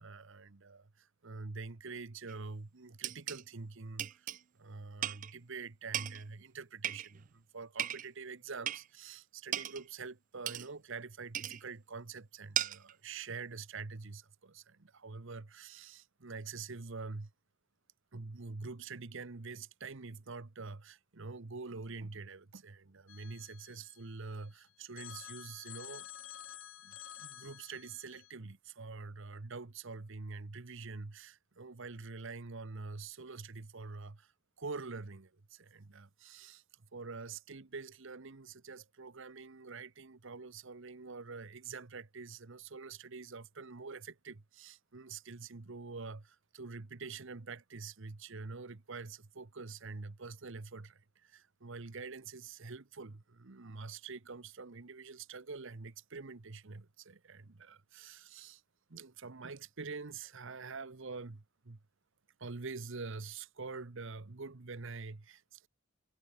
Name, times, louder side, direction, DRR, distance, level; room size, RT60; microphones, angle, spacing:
voice 1, 0.0-4.3 4.6-17.3 18.1-26.1 26.8-34.3 34.6-36.6 36.9-58.6 58.9-61.8 62.4-65.7, right 4 dB, 65° right, 1.0 m, -46 dB
sound 1, 2.3-2.4 3.0-3.4 4.0-4.4 5.0-5.3 5.9-6.2 6.8-7.3 7.8-8.1 8.7-8.9 9.5-9.8 10.5-10.7 11.3-11.6 12.6-12.9, right 12 dB, 40° right, 0.3 m, -37 dB
Telephone, 23.1-24.5 25.0-28.3, left 11 dB, 70° left, 2.5 m, -51 dB
head